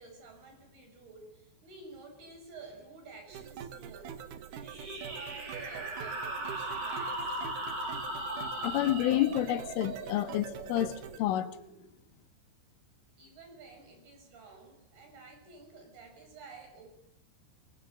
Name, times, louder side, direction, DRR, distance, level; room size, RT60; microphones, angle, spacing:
voice 1, 0.0-4.2 4.5-7.5 13.2-16.9, right 3 dB, 50° right, 8.1 m, -51 dB
sound 1, 3.3-11.2, right 8 dB, 70° right, 1.8 m, -45 dB
sound 2, 4.6-11.9, right 1 dB, 35° right, 5.5 m, -39 dB
voice 2, 8.6-11.5, left 13 dB, 80° left, 3.7 m, -29 dB
25.5 x 20.5 x 9.1 m
omnidirectional pair, 5.7 m